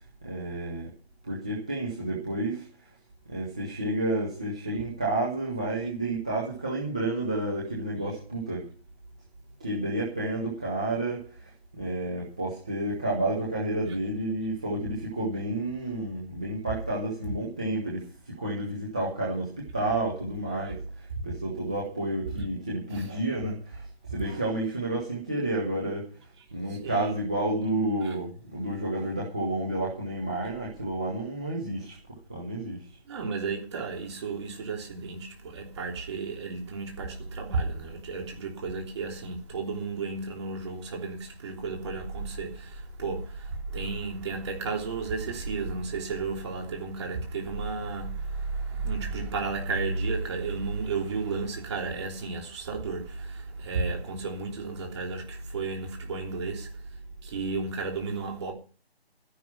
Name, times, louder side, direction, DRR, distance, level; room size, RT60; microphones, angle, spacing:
voice 1, 0.2-0.9 1.2-2.7 3.3-8.7 9.6-11.2 11.7-20.8 21.2-23.8 24.1-26.1 26.5-32.0 32.3-32.8, right 1 dB, 5° right, 0.7 m, -30 dB
voice 2, 26.7-27.1 28.0-28.1 33.1-56.7 57.2-58.5, right 4 dB, 25° right, 3.2 m, -33 dB
12.5 x 10.5 x 5.8 m
figure-of-eight pair, 165°, 31 cm